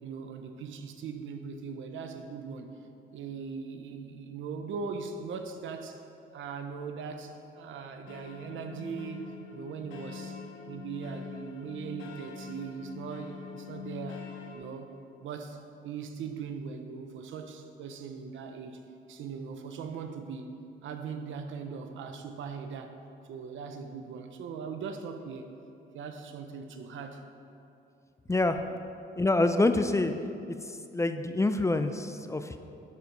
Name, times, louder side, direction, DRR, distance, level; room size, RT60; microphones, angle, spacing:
voice 1, 0.0-2.7 3.1-6.0 6.3-14.3 14.5-14.9 15.2-18.8 19.1-20.5 20.8-22.9 23.3-25.5 25.9-27.2, right 5 dB, 75° right, 6 dB, 0.8 m, -40 dB
sound 1, 8.1-14.6, left 5 dB, 85° left, 1.1 m, -44 dB
voice 2, 28.3-28.6 29.2-30.1 30.5-32.6, left 2 dB, 15° left, 8 dB, 0.4 m, -26 dB
12.0 x 4.6 x 5.2 m, 2.6 s
cardioid pair, 90°, 20 cm